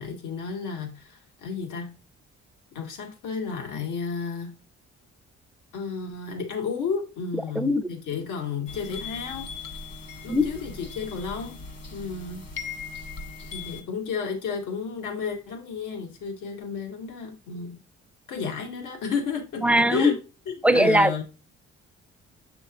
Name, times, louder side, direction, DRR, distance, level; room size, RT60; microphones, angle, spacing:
voice 1, 0.0-1.9 2.7-4.5 5.7-9.5 10.2-11.6 11.9-12.4 13.5-17.8 18.3-20.2 20.5-21.2, left 5 dB, 80° left, 2.0 m, -32 dB
voice 2, 7.6-7.9 10.3-10.4 19.6-20.2 20.6-21.1, equal, 5° right, 0.5 m, -20 dB
sound 1, 8.7-13.8, left 5 dB, 55° left, 1.7 m, -39 dB
6.9 x 6.0 x 2.5 m
cardioid pair, 90°, 30 cm